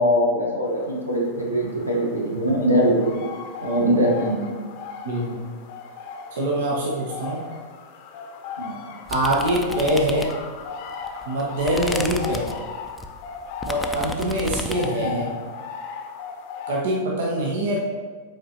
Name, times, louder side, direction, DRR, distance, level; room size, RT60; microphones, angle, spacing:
voice 1, 0.0-3.1 3.6-4.5 8.6-8.8 15.0-15.2, equal, 85° right, -2 dB, 1.2 m, -22 dB
sound 1, 0.7-16.8, left 6 dB, 45° left, 0.7 m, -37 dB
voice 2, 5.0-5.5 6.3-7.5 9.1-10.3 11.3-12.5 13.7-15.3 16.7-17.8, right 1 dB, 55° right, -2 dB, 0.8 m, -24 dB
sound 2, 9.1-10.6 11.0-15.0, left 2 dB, 10° left, 0.4 m, -33 dB
7.5 x 4.4 x 2.8 m, 1.5 s
figure-of-eight pair, 90°, 0 cm